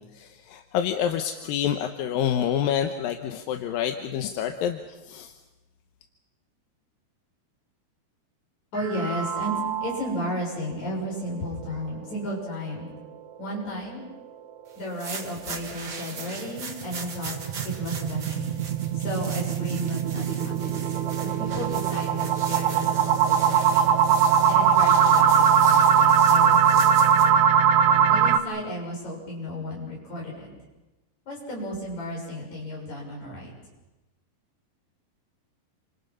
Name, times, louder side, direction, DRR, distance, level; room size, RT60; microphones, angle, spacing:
voice 1, 0.2-5.3, left 9 dB, 70° left, 6 dB, 2.5 m, -28 dB
voice 2, 8.7-12.9 13.4-14.0 14.8-17.4 17.6-18.5 18.9-20.8 21.2-23.9 24.5-27.4 28.1-30.5 31.3-33.5, equal, 45° left, -2 dB, 8.2 m, -34 dB
sound 1, 8.8-10.2 10.6-10.7 11.1-11.2 11.7-11.8 16.6-28.4, right 8 dB, 70° right, 1.9 m, -21 dB
sound 2, 14.8-27.3, right 5 dB, 45° right, 1.3 m, -40 dB
29.0 x 26.0 x 5.6 m, 1.1 s
omnidirectional pair, 4.7 m